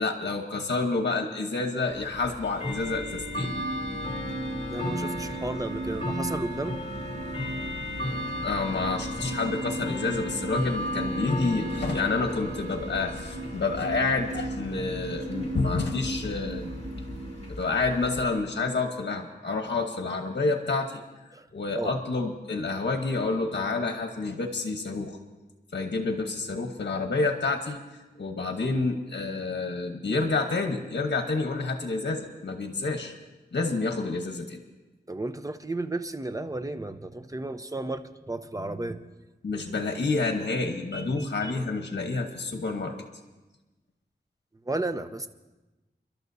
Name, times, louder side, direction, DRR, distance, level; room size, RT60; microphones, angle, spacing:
voice 1, 0.0-3.5 8.4-16.7 17.6-21.0 21.5-25.2 25.7-33.1 33.5-34.6 39.4-42.9, left 3 dB, 70° left, 4 dB, 1.1 m, -29 dB
Bell / Tick-tock, 1.9-18.3, left 1 dB, 35° left, 2.2 m, -35 dB
sound 1, 3.4-17.5, right 2 dB, 50° right, 0.9 m, -37 dB
voice 2, 4.7-6.7 21.3-21.4 21.7-21.9 35.1-38.0 38.3-39.0 40.9-41.5 44.7-45.3, right 2 dB, 20° right, 9 dB, 0.7 m, -33 dB
29.5 x 12.0 x 2.7 m, 1.1 s
wide cardioid pair, 75°, 18 cm